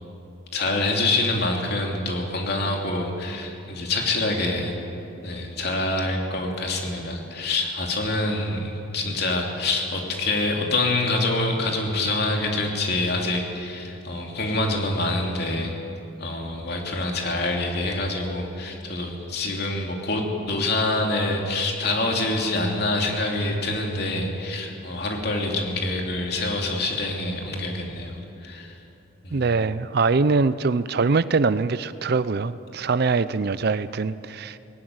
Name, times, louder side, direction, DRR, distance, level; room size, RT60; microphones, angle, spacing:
voice 1, 0.5-4.8 5.2-15.7 16.2-28.8 29.2-29.4, left 2 dB, 50° left, 1 dB, 3.0 m, -26 dB
voice 2, 29.3-34.6, right 4 dB, 50° right, 15 dB, 0.5 m, -23 dB
19.0 x 17.0 x 9.6 m, 2.8 s
head